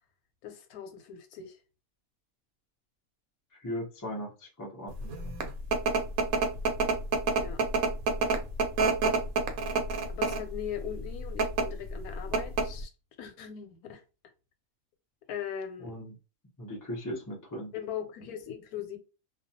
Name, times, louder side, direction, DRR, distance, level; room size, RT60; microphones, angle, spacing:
voice 1, 0.4-1.6 7.4-7.6 10.1-12.9 13.2-14.0 15.3-16.0 17.7-19.0, left 9 dB, 90° left, 1.1 m, -39 dB
voice 2, 3.6-5.4 15.8-16.1 16.6-17.7, equal, 20° left, 0.5 m, -38 dB
sound 1, 5.1-10.5 11.2-11.6 12.0-12.1 12.3-12.8, right 4 dB, 75° right, 1.0 m, -27 dB
2.4 x 2.3 x 2.6 m
omnidirectional pair, 1.5 m